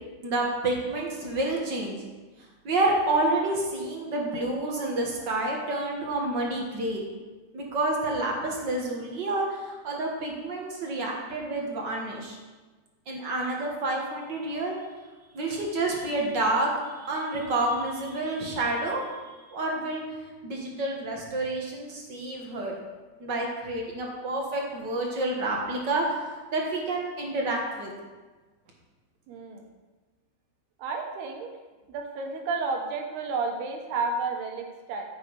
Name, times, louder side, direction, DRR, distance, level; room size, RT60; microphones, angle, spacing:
voice 1, 0.2-2.0 2.6-7.1 7.5-9.6 9.8-12.4 13.1-14.7 15.3-19.1 19.5-20.0 20.4-22.7 23.2-26.2 26.5-27.9, right 2 dB, 45° right, -1 dB, 1.5 m, -29 dB
voice 2, 29.3-29.6 30.8-31.5 31.9-35.1, right 4 dB, 75° right, 2 dB, 3.4 m, -31 dB
14.5 x 8.3 x 4.9 m, 1.3 s
omnidirectional pair, 4.7 m